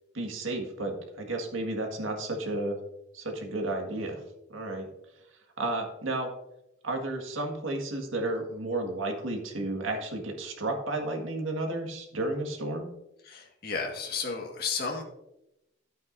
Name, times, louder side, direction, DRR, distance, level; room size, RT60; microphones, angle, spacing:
voice 1, 0.1-2.8 3.1-4.2 4.5-4.9 5.6-6.3 6.8-12.9, right 2 dB, 85° right, 2 dB, 1.8 m, -32 dB
voice 2, 13.2-15.0, left 5 dB, 50° left, 1 dB, 1.8 m, -33 dB
11.5 x 9.1 x 2.7 m, 0.86 s
head